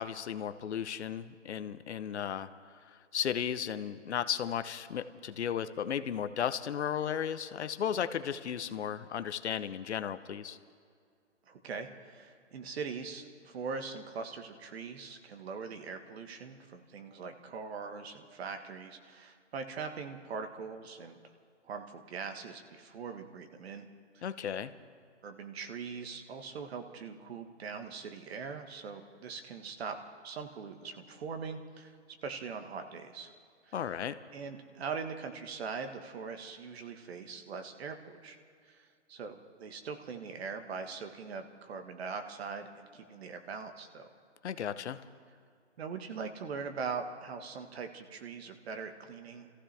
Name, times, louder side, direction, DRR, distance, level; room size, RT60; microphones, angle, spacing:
voice 1, 0.0-2.5 2.9-10.6 24.2-24.7 33.7-34.2 44.4-45.0, left 8 dB, 70° left, 12 dB, 0.8 m, -35 dB
voice 2, 11.5-21.2 21.6-23.9 24.1-24.2 25.2-30.0 30.2-31.9 32.2-33.3 33.6-33.8 34.3-38.4 38.7-44.1 45.8-49.5, right 5 dB, 60° right, 6 dB, 1.5 m, -41 dB
27.5 x 15.0 x 3.4 m, 2.2 s
hypercardioid pair, 125°, 35 cm